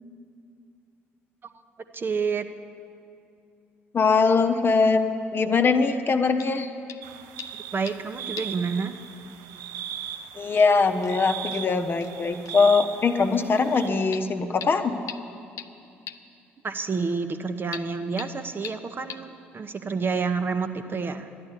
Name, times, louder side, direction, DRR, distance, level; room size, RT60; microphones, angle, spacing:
voice 1, 1.9-2.5 7.5-9.0 16.6-21.3, right 5 dB, 35° right, 9 dB, 0.8 m, -29 dB
voice 2, 3.9-5.0 5.3-6.7 10.3-15.0, left 4 dB, 35° left, 6 dB, 0.9 m, -22 dB
sound 1, 6.4-6.6 6.9-7.1 7.4-8.1 8.4-8.6 8.9-9.0 10.1-10.2 10.6-10.7 11.0-11.1 11.5-11.6 12.0-12.1 12.5-12.6 14.1-14.2 14.6-14.7 15.1-15.2 15.6-15.7 16.1-16.2 17.7-17.8 18.2-18.3 18.6-18.7 19.1-19.2, left 10 dB, 55° left, 0.6 m, -39 dB
sound 2, 7.0-13.9, right 9 dB, 65° right, 0.6 m, -39 dB
12.5 x 11.0 x 8.3 m, 2.5 s
figure-of-eight pair, 45°, 6 cm